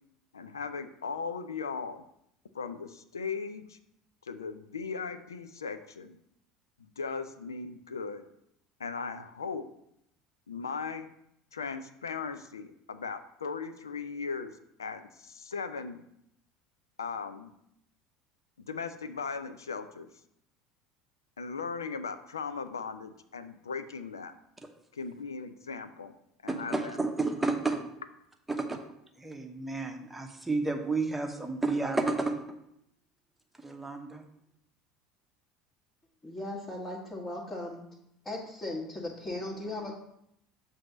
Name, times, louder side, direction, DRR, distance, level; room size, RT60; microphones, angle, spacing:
voice 1, 0.3-2.0 2.5-3.8 4.2-6.2 7.0-8.2 8.8-9.7 10.5-11.1 11.5-16.0 17.0-17.5 18.6-20.1 21.4-24.3 24.9-26.1 26.4-27.0, left 5 dB, 80° left, 11 dB, 0.4 m, -38 dB
voice 2, 26.5-27.8 28.5-28.8 29.2-32.4 33.6-34.2, right 3 dB, 5° right, 3 dB, 1.0 m, -31 dB
voice 3, 36.2-37.8 38.2-39.9, left 1 dB, 20° left, -5 dB, 1.5 m, -37 dB
7.6 x 2.8 x 5.9 m, 0.77 s
figure-of-eight pair, 70°, 2 cm